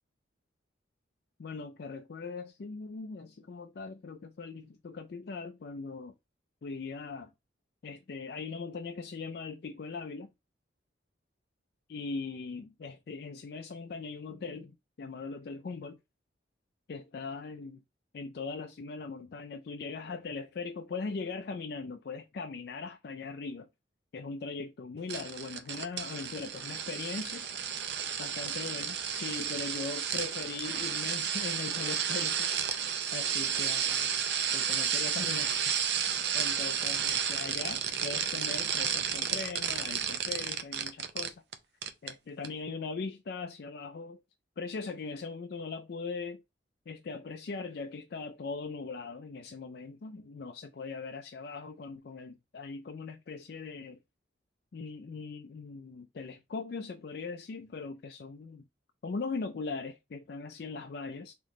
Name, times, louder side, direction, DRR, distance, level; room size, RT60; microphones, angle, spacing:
voice 1, 1.4-6.1 6.6-7.3 7.8-10.3 11.9-16.0 16.9-17.8 18.1-23.7 24.1-27.5 28.2-32.5 33.1-34.1 34.5-35.8 36.3-41.3 42.0-44.2 44.6-46.4 46.9-54.0 54.7-58.6 59.0-61.4, left 4 dB, 55° left, 0.4 m, -40 dB
sound 1, 25.1-41.5 41.8-42.1 42.4-42.5, right 8 dB, 60° right, 0.5 m, -32 dB
4.0 x 3.0 x 3.0 m
head